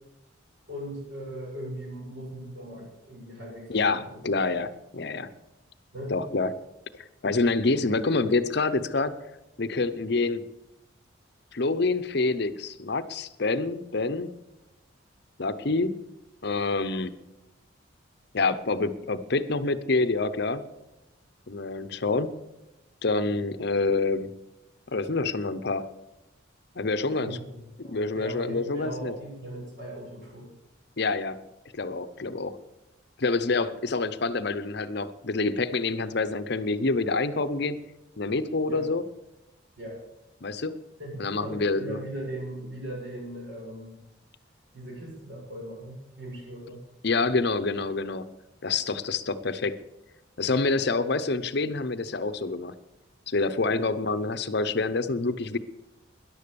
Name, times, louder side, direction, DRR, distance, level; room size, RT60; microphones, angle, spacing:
voice 1, 0.7-4.2 5.9-6.2 7.7-7.8 27.1-30.5 38.7-38.9 39.8-40.0 41.0-44.0 44.7-46.8 50.5-51.1 53.7-53.9, right 1 dB, 60° right, -2 dB, 6.9 m, -39 dB
voice 2, 3.7-5.3 6.1-6.5 6.9-9.1 9.6-10.4 11.5-14.3 15.4-15.9 16.4-17.2 18.3-20.6 21.5-22.3 23.0-24.3 24.9-25.9 26.8-27.4 27.8-29.1 31.0-31.4 31.7-32.6 33.2-37.8 38.2-39.0 40.4-40.8 41.2-42.0 47.0-48.2 48.6-49.8 50.4-52.7 53.3-55.6, left 3 dB, 55° left, 13 dB, 0.7 m, -27 dB
13.5 x 11.0 x 6.9 m, 0.94 s
head